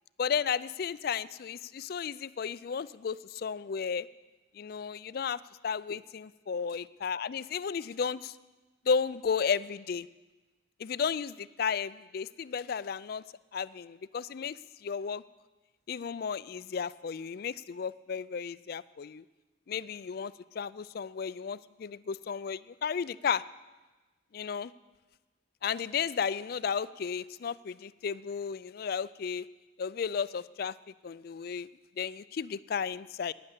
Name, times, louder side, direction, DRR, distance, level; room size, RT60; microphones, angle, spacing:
voice 1, 0.2-4.1 4.5-8.4 8.9-10.1 10.8-13.2 13.5-15.2 15.9-19.2 19.7-23.4 24.3-24.7 25.6-29.5 29.8-30.7 31.0-31.7 32.0-33.3, left 6 dB, 50° left, 18 dB, 0.3 m, -33 dB
12.5 x 9.7 x 8.2 m, 1.2 s
head